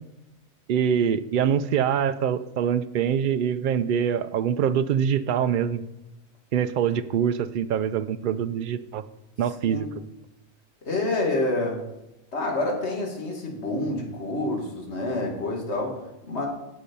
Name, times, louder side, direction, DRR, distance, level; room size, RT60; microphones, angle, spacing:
voice 1, 0.7-5.8 6.5-9.0 9.4-9.9, right 8 dB, 80° right, 12 dB, 0.4 m, -24 dB
voice 2, 10.8-11.8 12.3-16.5, left 2 dB, 50° left, 0 dB, 2.3 m, -28 dB
8.7 x 7.3 x 5.3 m, 0.91 s
omnidirectional pair, 1.4 m